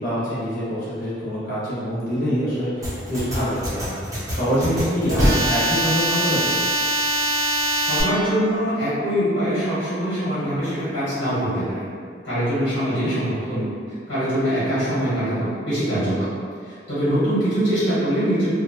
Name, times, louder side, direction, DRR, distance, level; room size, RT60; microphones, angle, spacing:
voice 1, 0.0-4.0 4.3-6.5 12.9-13.1, equal, 50° left, -10 dB, 1.0 m, -25 dB
sound 1, 2.8-8.0, right 1 dB, 20° right, 0.6 m, -23 dB
voice 2, 7.7-11.8 12.2-13.7 14.1-16.3 16.7-18.5, equal, 80° left, -12 dB, 1.3 m, -23 dB
2.7 x 2.2 x 2.7 m, 2.1 s
head